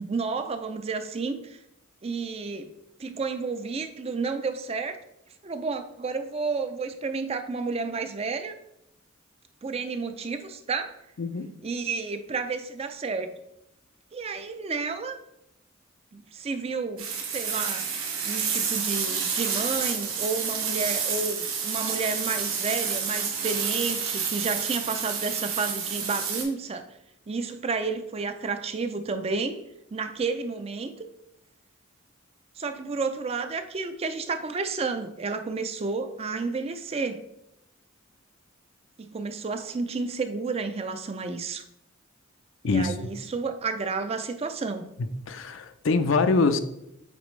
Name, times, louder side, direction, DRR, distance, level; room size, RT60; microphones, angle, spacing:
voice 1, 0.0-1.6 2.0-2.7 3.0-5.0 5.4-8.5 9.6-11.0 11.6-13.3 14.1-15.2 16.1-17.1 17.3-17.9 18.2-26.8 27.3-29.6 29.9-31.1 32.6-37.3 39.0-41.6 42.6-44.9, right 4 dB, 30° right, 9 dB, 0.4 m, -31 dB
voice 2, 11.2-11.5 42.6-43.0 45.3-46.6, left 3 dB, 65° left, 9 dB, 0.5 m, -24 dB
sound 1, 17.0-26.4, right 6 dB, 80° right, 1.3 m, -29 dB
8.3 x 3.9 x 3.2 m, 0.83 s
head